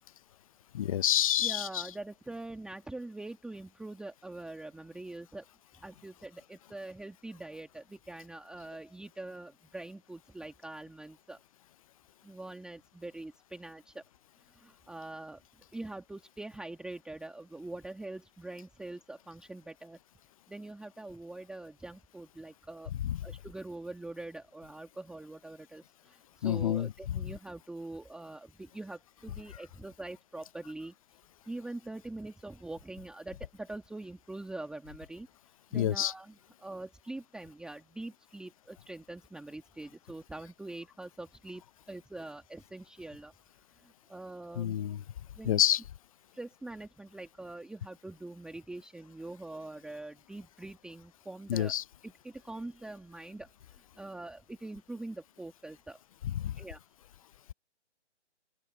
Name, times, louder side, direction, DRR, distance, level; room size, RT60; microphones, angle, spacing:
voice 1, 0.7-1.9 23.0-23.2 26.4-27.3 35.7-36.1 44.6-45.0 45.4-45.8 51.5-51.8 56.3-56.6, left 11 dB, 30° left, 0.7 m, -28 dB
voice 2, 1.4-5.5 5.8-11.4 12.2-14.0 14.5-15.4 15.7-20.0 20.5-22.9 23.2-30.9 31.5-35.3 35.7-43.3 43.7-44.8 45.3-45.6 46.3-51.8 52.0-56.0 56.6-56.8, right 2 dB, ahead, 1.8 m, -44 dB
open air
hypercardioid pair, 145°, 35 cm